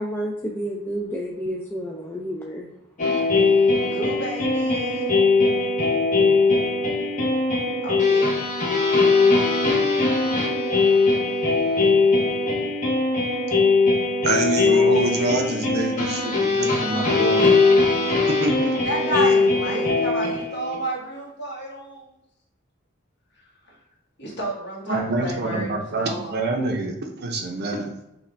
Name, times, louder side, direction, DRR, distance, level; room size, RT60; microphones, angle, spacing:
voice 1, 0.0-2.7, equal, 10° left, -3 dB, 0.4 m, -30 dB
sound 1, 3.0-20.8, left 3 dB, 40° left, 1.0 m, -20 dB
voice 2, 3.8-5.1 7.8-8.3 10.9-11.0 18.8-22.1 24.2-25.7 26.0-26.4, right 1 dB, 55° left, -3 dB, 1.4 m, -31 dB
voice 3, 14.2-17.5 18.1-18.8 19.7-19.8 24.9-27.9, right 2 dB, 50° right, 2 dB, 0.7 m, -26 dB
5.7 x 2.4 x 3.3 m, 0.88 s
head